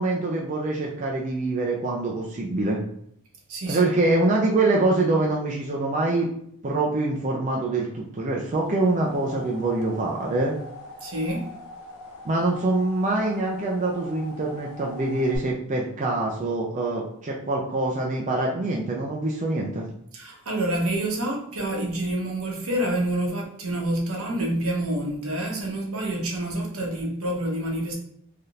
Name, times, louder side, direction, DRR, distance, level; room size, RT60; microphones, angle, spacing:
voice 1, 0.0-2.8 3.7-6.3 6.6-10.5 12.2-19.8, right 2 dB, 35° right, -2 dB, 0.4 m, -25 dB
voice 2, 3.5-3.8 11.0-11.5 20.1-27.9, right 1 dB, 70° right, 0 dB, 0.8 m, -27 dB
sound 1, 8.7-15.4, left 1 dB, 65° left, 0.6 m, -42 dB
3.4 x 2.7 x 2.4 m, 0.70 s
head